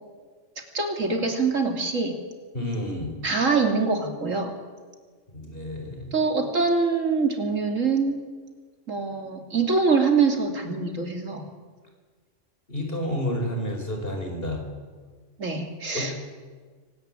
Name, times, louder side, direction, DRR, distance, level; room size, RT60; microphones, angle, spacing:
voice 1, 0.7-2.2 3.2-4.5 6.1-8.2 8.9-11.5 15.4-16.2, right 4 dB, 85° right, 4 dB, 3.3 m, -24 dB
voice 2, 2.5-3.2 5.3-6.1 12.7-14.6 15.9-16.2, left 1 dB, 45° left, 3 dB, 5.3 m, -30 dB
25.0 x 19.0 x 9.1 m, 1.5 s
omnidirectional pair, 1.3 m